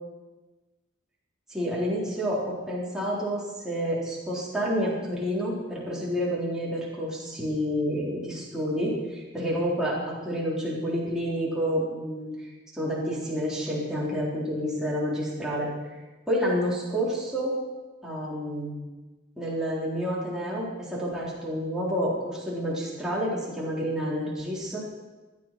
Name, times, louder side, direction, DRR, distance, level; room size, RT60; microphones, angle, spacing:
voice 1, 1.5-12.5 12.7-15.7 16.3-17.6 18.0-18.7 19.4-24.8, equal, 5° right, -6 dB, 3.8 m, -29 dB
15.0 x 11.0 x 6.0 m, 1.2 s
head